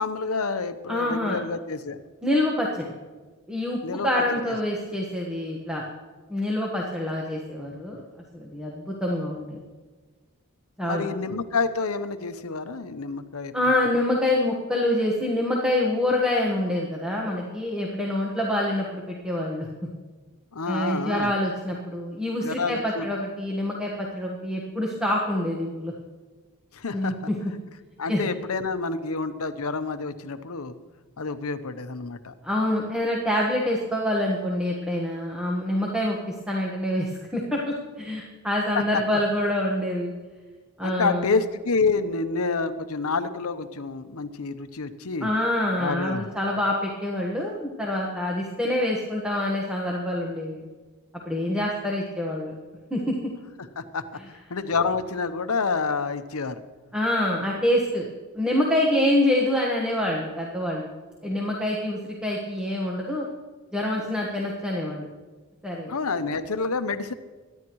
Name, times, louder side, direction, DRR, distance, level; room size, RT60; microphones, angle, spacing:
voice 1, 0.0-2.0 3.8-4.2 10.8-13.5 20.5-21.3 22.4-23.1 26.7-27.2 28.0-30.7 31.2-32.3 38.7-38.8 40.8-45.3 45.8-46.2 53.8-56.6 65.9-67.1, left 4 dB, 75° left, 9 dB, 0.8 m, -28 dB
voice 2, 0.9-1.4 2.2-2.9 3.5-5.8 6.3-8.0 8.3-9.6 10.8-11.2 13.5-19.7 20.6-25.9 26.9-27.4 28.1-28.2 32.4-40.1 40.8-41.3 45.2-50.6 51.2-52.6 52.9-53.2 56.9-58.0 58.3-60.9 61.2-63.3 63.7-65.1 65.6-65.9, left 1 dB, 5° right, -3 dB, 1.3 m, -26 dB
23.5 x 11.0 x 3.1 m, 1.3 s
head